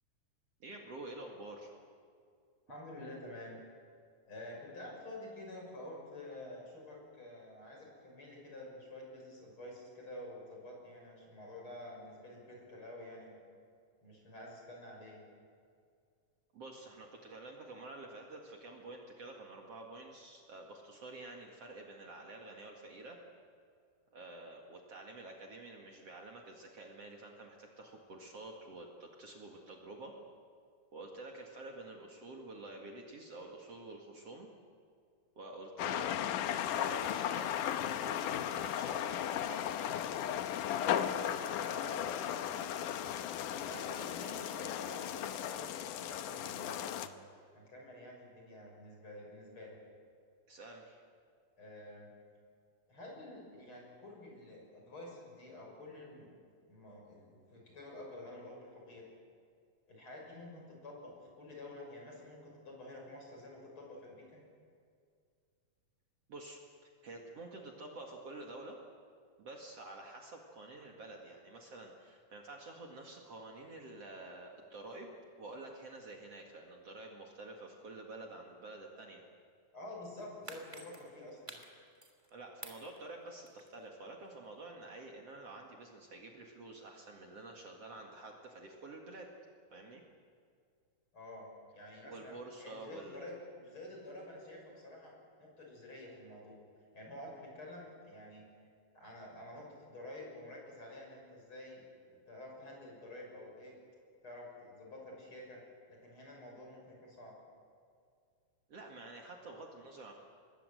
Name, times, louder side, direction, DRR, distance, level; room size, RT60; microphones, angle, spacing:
voice 1, 0.6-1.7 16.5-23.2 24.1-30.1 30.9-34.5 35.4-39.7 43.9-44.1 50.5-51.0 66.3-68.8 69.4-79.2 82.3-89.3 89.7-90.0 92.0-93.3 108.7-110.1, right 2 dB, 50° right, 0 dB, 2.8 m, -49 dB
voice 2, 2.7-3.6 4.3-13.4 14.0-15.2 40.8-42.7 43.5-47.1 47.5-49.8 51.6-52.1 52.9-56.3 56.7-59.0 59.9-64.4 79.7-81.6 91.1-91.5 91.7-95.1 95.4-96.6 96.9-98.5 98.9-101.8 102.3-103.7 104.2-105.6 105.9-107.4, left 1 dB, 35° left, -1 dB, 7.2 m, -49 dB
sound 1, 35.8-47.1, left 10 dB, 75° left, 2.4 m, -36 dB
sound 2, 80.1-82.3 82.6-83.9 84.3-84.4, right 1 dB, 10° right, 2.5 m, -51 dB
27.0 x 21.0 x 7.9 m, 2.2 s
omnidirectional pair, 3.8 m